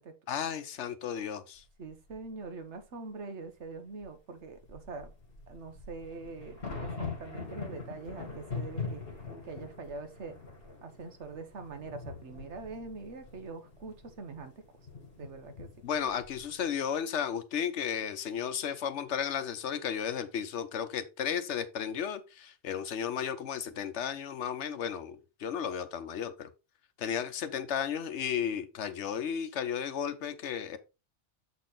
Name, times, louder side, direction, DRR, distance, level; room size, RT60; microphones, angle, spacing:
voice 1, 0.3-1.6 15.8-26.5 27.0-30.8, left 8 dB, 80° left, 1.1 m, -34 dB
voice 2, 1.8-5.1 5.5-9.0 9.4-10.3 10.8-14.6 15.2-15.7, right 3 dB, 80° right, 1.4 m, -43 dB
sound 1, 1.9-2.2 4.0-4.1 4.5-16.8, left 4 dB, 55° left, 2.4 m, -43 dB
7.4 x 4.1 x 3.8 m
omnidirectional pair, 1.2 m